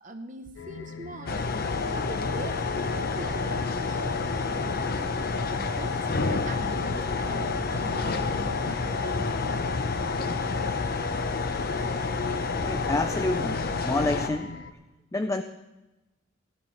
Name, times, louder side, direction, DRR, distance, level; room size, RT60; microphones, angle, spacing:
voice 1, 0.0-1.4 1.9-4.0 4.3-4.8 5.6-9.6, right 2 dB, 40° right, 4 dB, 0.8 m, -42 dB
sound 1, 0.6-14.7, left 5 dB, 90° left, 0.7 m, -42 dB
sound 2, 1.3-14.3, left 4 dB, 50° left, 0.7 m, -29 dB
voice 2, 12.6-13.6 13.8-14.6 15.1-15.4, left 2 dB, 15° left, 9 dB, 0.3 m, -28 dB
16.0 x 12.0 x 3.2 m, 1.1 s
head